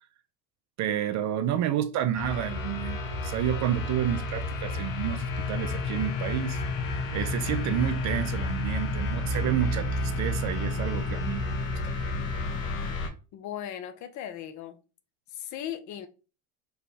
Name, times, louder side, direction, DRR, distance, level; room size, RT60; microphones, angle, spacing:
voice 1, 0.8-6.6 7.1-11.6 11.8-12.3, right 11 dB, 45° right, 0.5 m, -30 dB
sound 1, 2.2-13.1, left 2 dB, 85° left, 0.8 m, -31 dB
voice 2, 13.3-14.8 15.3-16.1, left 10 dB, 45° left, 0.6 m, -37 dB
3.4 x 2.2 x 4.1 m
hypercardioid pair, 85°, 40 cm